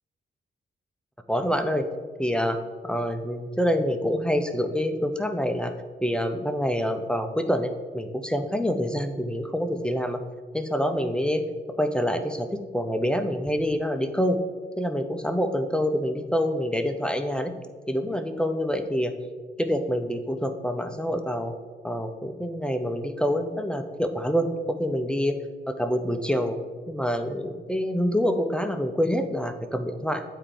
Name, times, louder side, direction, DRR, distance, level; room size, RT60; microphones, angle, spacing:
voice 1, 1.3-1.9 2.2-5.7 6.0-10.2 10.5-11.4 11.8-14.4 14.8-17.5 17.9-19.1 19.6-21.5 21.8-25.4 25.7-26.6 26.9-30.2, equal, 5° left, 7 dB, 0.5 m, -26 dB
8.3 x 4.5 x 3.8 m, 1.5 s
cardioid pair, 90°, 20 cm